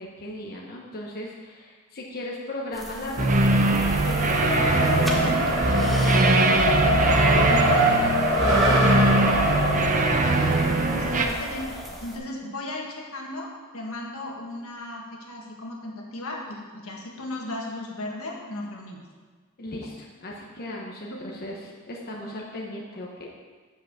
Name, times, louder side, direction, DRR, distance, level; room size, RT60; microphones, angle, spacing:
voice 1, 0.0-7.0 7.3-9.9 19.6-23.3, left 1 dB, 45° left, -2 dB, 1.1 m, -36 dB
sound 1, 2.7-12.2, equal, ahead, 1.3 m, -34 dB
Race car auto racing, 2.9-12.0, equal, 80° right, 2.4 m, -25 dB
sound 2, 3.2-11.3, right 2 dB, 35° right, 0.8 m, -22 dB
voice 2, 10.9-19.0 21.1-21.2, left 1 dB, 70° left, -2 dB, 1.9 m, -36 dB
7.8 x 6.1 x 7.0 m, 1.5 s
head